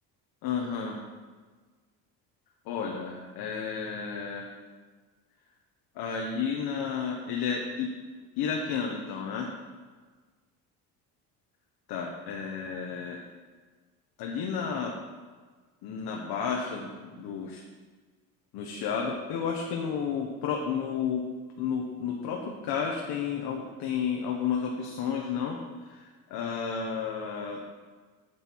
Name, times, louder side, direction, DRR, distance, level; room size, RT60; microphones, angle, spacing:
voice 1, 0.4-1.0 2.6-4.5 5.9-7.9 8.4-9.5 11.9-13.2 14.2-14.9 15.8-17.6 18.5-21.3 21.6-27.7, left 6 dB, 75° left, 0 dB, 1.2 m, -32 dB
9.1 x 8.1 x 4.6 m, 1.4 s
cardioid pair, 150°, 37 cm